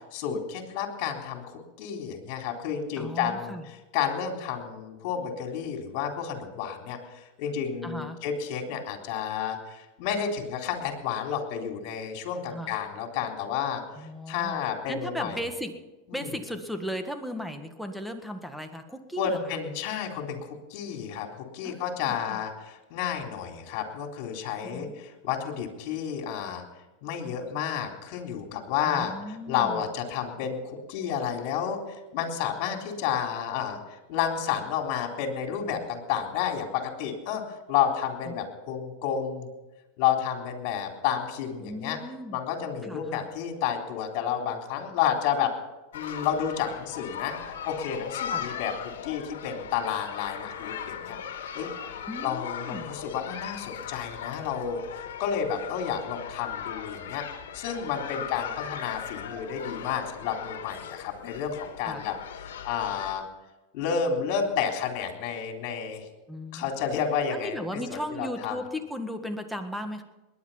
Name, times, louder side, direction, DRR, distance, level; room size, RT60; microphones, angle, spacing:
voice 1, 0.1-1.4 1.8-3.6 3.9-13.8 14.3-15.4 16.1-16.3 19.2-21.3 21.5-26.6 27.0-29.1 29.5-31.8 32.1-33.8 34.1-37.4 37.7-39.5 40.0-42.0 42.3-45.5 45.9-48.7 49.0-51.2 51.5-51.7 52.2-57.3 57.5-62.1 62.6-63.2 63.7-66.1 66.5-67.6 67.9-68.6, left 8 dB, 55° left, 3 dB, 3.7 m, -30 dB
voice 2, 3.0-3.7 7.8-8.2 12.5-12.7 14.0-14.6 14.9-15.7 16.1-19.6 21.6-22.4 24.6-24.9 28.9-29.8 38.3-38.4 41.6-42.4 42.8-43.3 48.3-48.5 52.1-52.9 61.8-62.0 66.3-66.7 67.3-70.0, equal, ahead, 7 dB, 1.6 m, -36 dB
sound 1, 45.9-63.1, left 8 dB, 80° left, 1.9 m, -38 dB
20.5 x 10.5 x 5.7 m, 1.1 s
hypercardioid pair, 120°, 0 cm